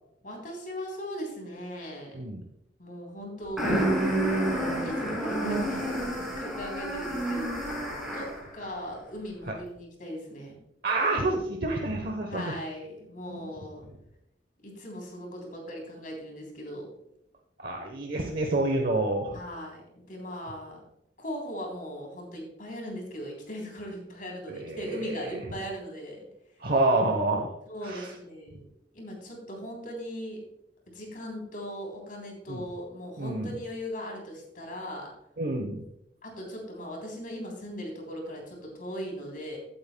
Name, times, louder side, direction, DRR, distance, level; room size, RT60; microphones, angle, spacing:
voice 1, 0.2-2.2 2.8-3.9 4.8-7.8 8.1-10.6 12.3-13.8 14.6-16.9 19.3-20.8 21.2-26.3 27.7-28.6 28.9-30.4 30.9-35.1 36.2-39.6, equal, 50° left, 0 dB, 3.4 m, -39 dB
sound 1, 3.6-8.5, right 1 dB, ahead, 3.8 m, -29 dB
voice 2, 10.8-12.5 13.3-13.5 17.6-19.4 24.6-25.4 26.6-27.5 27.8-28.1 32.5-32.6 33.2-33.5 35.4-35.8, right 2 dB, 55° right, 3 dB, 0.9 m, -28 dB
15.5 x 8.7 x 2.2 m, 0.83 s
head